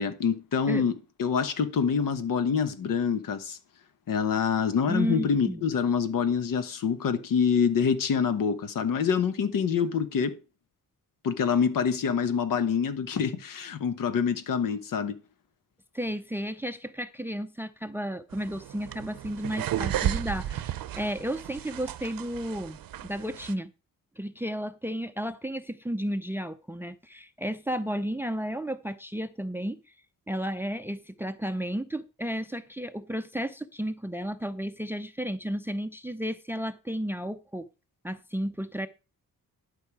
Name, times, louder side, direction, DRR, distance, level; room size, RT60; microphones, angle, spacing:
voice 1, 0.0-3.6 4.1-10.4 11.2-15.2, left 6 dB, 70° left, 1.2 m, -26 dB
voice 2, 4.9-5.6 15.9-23.7 24.2-29.8 30.3-37.7 38.0-38.9, equal, 5° right, 0.5 m, -33 dB
sound 1, 18.3-23.5, right 11 dB, 75° right, 0.8 m, -34 dB
12.0 x 5.5 x 4.8 m
cardioid pair, 120°, 34 cm